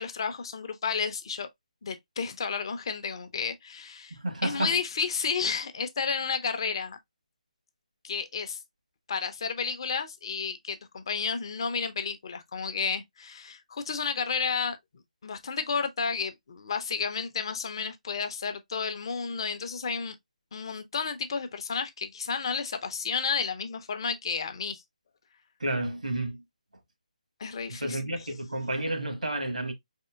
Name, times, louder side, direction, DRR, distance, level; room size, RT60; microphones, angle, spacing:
voice 1, 0.0-1.5 1.8-4.2 4.4-7.0 8.0-8.6 9.1-14.8 15.2-20.2 20.5-24.8 27.4-28.1, left 5 dB, 40° left, 0.6 m, -32 dB
voice 2, 4.1-4.7 25.6-26.4 27.7-29.7, right 1 dB, 70° right, 1.2 m, -31 dB
4.1 x 3.6 x 2.3 m
figure-of-eight pair, 145°, 4 cm